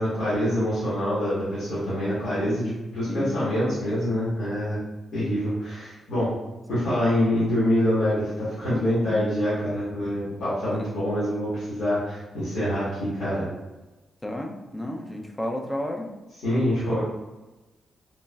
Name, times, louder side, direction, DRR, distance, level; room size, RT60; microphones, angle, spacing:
voice 1, 0.0-4.8 5.1-6.4 6.7-13.4 16.4-17.0, equal, 90° left, -12 dB, 1.3 m, -25 dB
voice 2, 14.2-16.1, left 1 dB, 15° left, 2 dB, 0.4 m, -32 dB
3.3 x 2.0 x 2.2 m, 1.1 s
cardioid pair, 105°, 0 cm